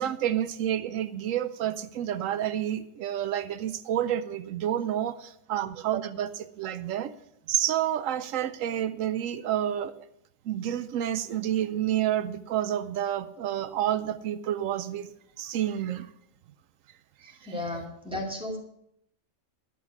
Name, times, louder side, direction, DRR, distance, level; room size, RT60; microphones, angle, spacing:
voice 1, 0.0-7.1 7.5-10.1 10.5-15.1 15.4-16.1 17.2-17.3, right 11 dB, 85° right, 14 dB, 1.0 m, -29 dB
voice 2, 17.2-18.6, left 1 dB, 5° right, 0 dB, 2.7 m, -34 dB
11.5 x 6.3 x 9.5 m, 0.76 s
omnidirectional pair, 1.3 m